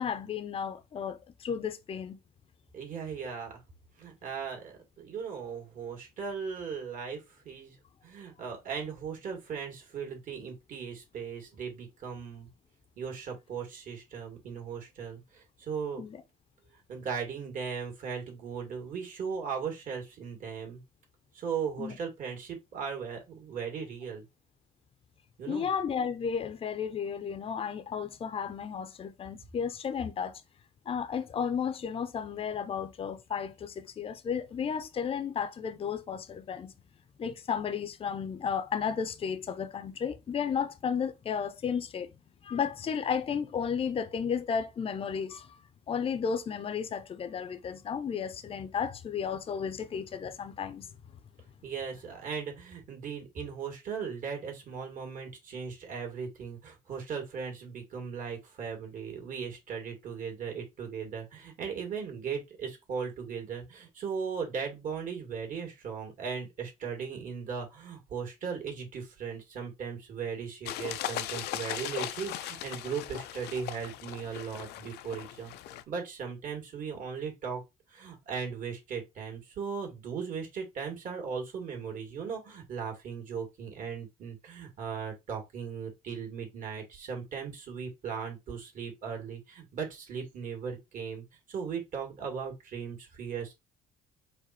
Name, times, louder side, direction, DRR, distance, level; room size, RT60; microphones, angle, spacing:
voice 1, 0.0-2.2 16.0-16.2 21.8-22.0 25.5-30.3 30.9-36.7 37.2-42.1 42.4-45.5 45.9-50.9, left 7 dB, 35° left, 0.6 m, -33 dB
voice 2, 2.7-3.6 4.0-7.8 8.0-12.5 13.0-16.0 16.9-20.8 21.3-24.2 25.4-25.7 51.6-75.5 75.9-77.6 77.9-93.5, right 6 dB, 50° right, 2.1 m, -38 dB
sound 1, 70.7-75.8, left 12 dB, 75° left, 0.5 m, -38 dB
4.9 x 2.5 x 4.2 m
cardioid pair, 110°, 17 cm